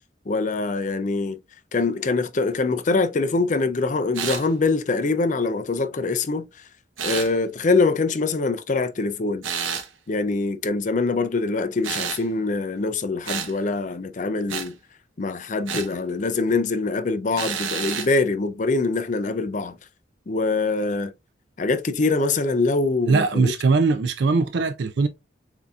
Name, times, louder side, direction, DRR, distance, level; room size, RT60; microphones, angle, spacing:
voice 1, 0.3-1.4 1.7-6.5 7.0-9.4 10.1-14.8 15.2-19.8 20.3-21.1 21.6-23.5, left 3 dB, 40° left, 0.5 m, -24 dB
sound 1, 4.1-4.5 7.0-7.3 9.4-9.9 11.8-12.2 13.2-13.5 14.5-14.7 15.7-15.9 17.3-18.1, right 7 dB, 90° right, 0.9 m, -29 dB
voice 2, 23.1-25.1, right 4 dB, 65° right, 0.4 m, -20 dB
7.1 x 2.7 x 2.3 m
head